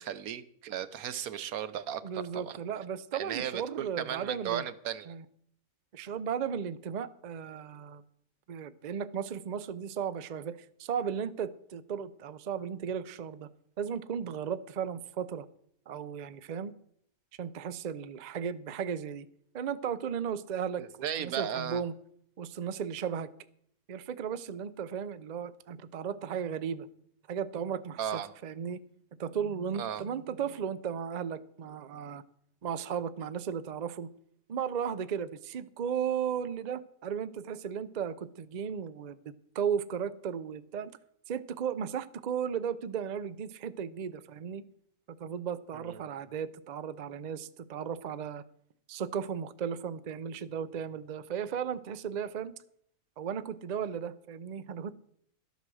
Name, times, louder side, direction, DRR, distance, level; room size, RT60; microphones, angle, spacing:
voice 1, 0.0-2.6 3.1-5.1 20.8-21.8 28.0-28.3 29.8-30.0 45.7-46.1, right 9 dB, 80° right, 13 dB, 1.2 m, -36 dB
voice 2, 2.0-4.6 5.1-5.2 5.9-8.0 8.5-13.5 13.8-15.5 15.9-16.7 17.4-19.3 19.5-21.9 22.4-23.3 23.9-26.9 27.3-28.8 29.2-32.2 32.6-34.1 34.5-40.9 41.3-44.6 45.1-48.4 48.9-52.5 53.2-54.9, right 7 dB, 50° right, 13 dB, 0.5 m, -35 dB
13.0 x 8.2 x 6.3 m, 0.67 s
omnidirectional pair, 1.5 m